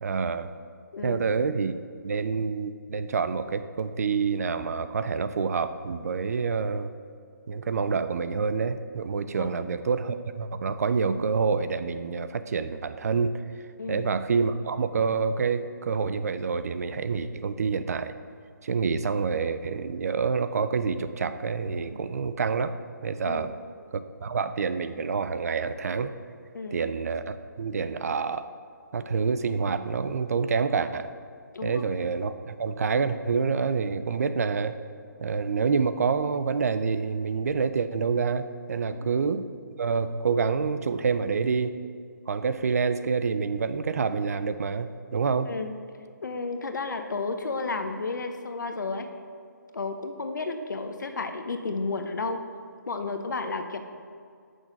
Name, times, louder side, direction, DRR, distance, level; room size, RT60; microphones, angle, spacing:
voice 1, 0.0-0.5 1.0-1.7 2.0-6.9 7.5-13.4 13.9-18.1 18.6-22.7 23.0-23.5 23.9-26.1 26.7-28.5 28.9-31.1 31.6-34.7 35.2-39.5 39.8-41.7 42.3-45.5, right 5 dB, 50° right, 11 dB, 0.4 m, -27 dB
voice 2, 45.4-45.7 46.2-49.1 49.7-52.4 52.9-53.8, left 3 dB, 70° left, 6 dB, 0.8 m, -32 dB
6.3 x 6.1 x 5.2 m, 2.3 s
figure-of-eight pair, 155°, 10 cm